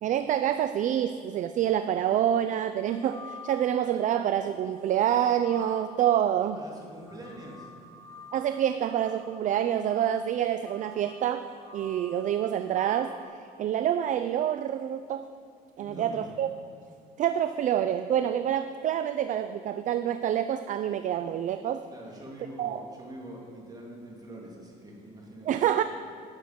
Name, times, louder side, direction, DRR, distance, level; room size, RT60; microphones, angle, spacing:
voice 1, 0.0-6.6 8.3-11.5 11.7-15.3 15.8-16.5 17.2-21.8 22.6-22.9 25.5-25.8, right 10 dB, 50° right, 10 dB, 0.4 m, -27 dB
sound 1, 2.8-4.1 4.7-13.3, left 3 dB, 15° left, 2.2 m, -50 dB
voice 2, 6.5-7.7 15.8-16.3 21.9-25.6, right 1 dB, 20° right, -2 dB, 2.5 m, -44 dB
11.0 x 6.5 x 5.9 m, 2.3 s
cardioid pair, 110°, 17 cm